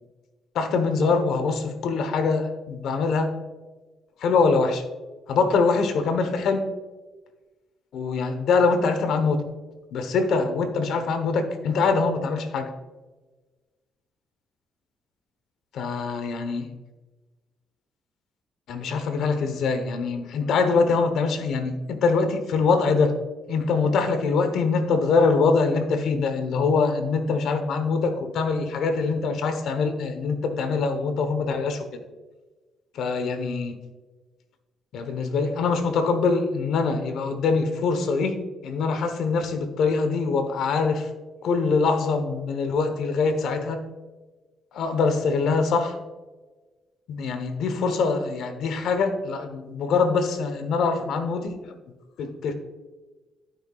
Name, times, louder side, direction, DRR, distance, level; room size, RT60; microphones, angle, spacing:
voice 1, 0.5-3.4 4.2-4.8 5.3-6.7 7.9-9.4 9.9-12.7 15.7-16.7 18.7-23.1 23.5-32.0 32.9-33.8 34.9-38.4 38.6-41.1 41.4-43.9 44.7-46.0 47.1-51.7 52.2-52.5, left 4 dB, 75° left, 8 dB, 1.1 m, -24 dB
12.5 x 5.8 x 2.4 m, 1.2 s
cardioid pair, 90°, 0 cm